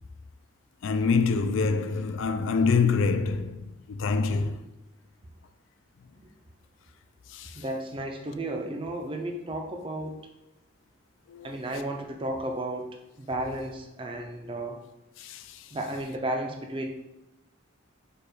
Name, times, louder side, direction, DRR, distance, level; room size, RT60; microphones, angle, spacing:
voice 1, 0.8-4.6 7.3-7.6 11.3-11.5 15.2-15.6, left 4 dB, 60° left, 0.3 m, -26 dB
voice 2, 7.6-10.2 11.4-12.9 13.2-14.8 15.7-16.9, right 1 dB, 25° right, 0.4 m, -33 dB
4.6 x 2.3 x 4.8 m
head